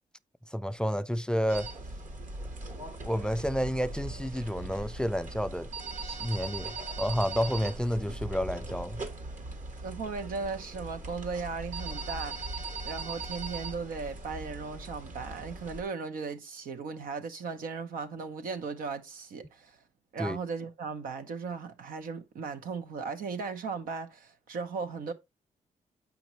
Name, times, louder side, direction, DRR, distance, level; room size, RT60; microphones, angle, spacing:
voice 1, 0.5-1.7 3.0-5.7 6.0-9.0 20.2-20.4, equal, 5° left, 0.3 m, -30 dB
sound 1, 1.5-15.8, right 2 dB, 65° right, 1.4 m, -40 dB
voice 2, 9.8-12.5 12.8-19.7 20.1-25.1, right 4 dB, 90° right, 0.8 m, -37 dB
7.1 x 5.1 x 3.0 m
cardioid pair, 75°, 14 cm